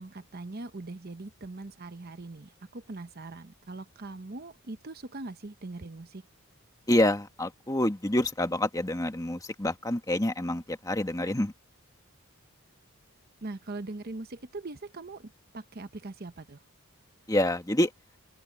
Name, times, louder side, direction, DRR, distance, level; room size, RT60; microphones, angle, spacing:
voice 1, 0.0-6.2 13.4-16.6, right 2 dB, 45° right, 0.9 m, -41 dB
voice 2, 6.9-11.5 17.3-17.9, left 1 dB, 15° left, 1.6 m, -27 dB
head